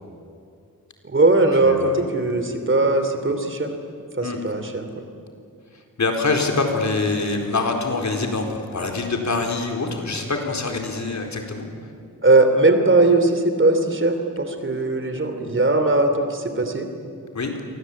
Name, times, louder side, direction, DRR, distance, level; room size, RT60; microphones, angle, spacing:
voice 1, 1.0-3.7 4.2-5.0 12.2-16.9, right 2 dB, 35° right, 7 dB, 3.2 m, -19 dB
voice 2, 1.6-2.0 4.2-4.4 6.0-11.7 17.3-17.5, left 3 dB, 55° left, 3 dB, 4.4 m, -24 dB
29.0 x 23.5 x 8.6 m, 2.4 s
wide cardioid pair, 100°, 34 cm